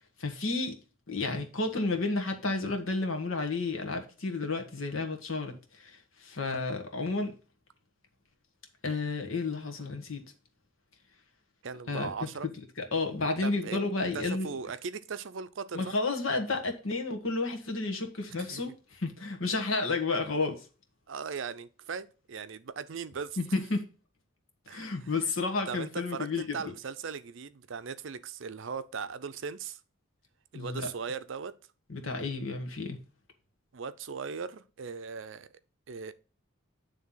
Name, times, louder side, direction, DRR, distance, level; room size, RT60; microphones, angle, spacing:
voice 1, 0.2-0.8 1.1-7.3 8.8-10.2 11.9-12.1 12.8-14.5 15.7-20.7 23.4-23.8 24.7-26.6 30.5-30.9 31.9-33.0, left 3 dB, 75° left, 1.5 m, -31 dB
voice 2, 11.6-12.5 13.4-13.8 14.1-15.9 18.4-18.6 21.1-23.4 24.7-25.1 25.7-29.8 30.5-31.6 33.7-35.5 35.9-36.1, right 5 dB, 60° right, 0.5 m, -38 dB
9.6 x 3.4 x 5.6 m
head